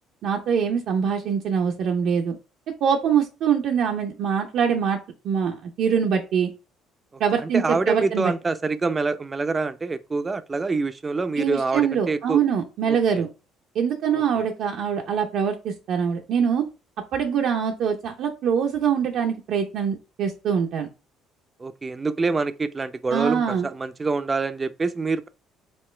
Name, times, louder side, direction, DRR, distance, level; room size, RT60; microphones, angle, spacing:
voice 1, 0.2-2.4 2.8-5.0 5.2-6.5 7.2-8.3 11.4-13.3 13.7-16.7 17.1-20.9 23.1-23.7, right 7 dB, 65° right, 0.7 m, -23 dB
voice 2, 7.3-12.4 12.9-13.2 14.1-14.2 21.6-25.3, right 3 dB, 25° right, 0.5 m, -26 dB
5.4 x 3.0 x 3.2 m
supercardioid pair, 85°, 0 cm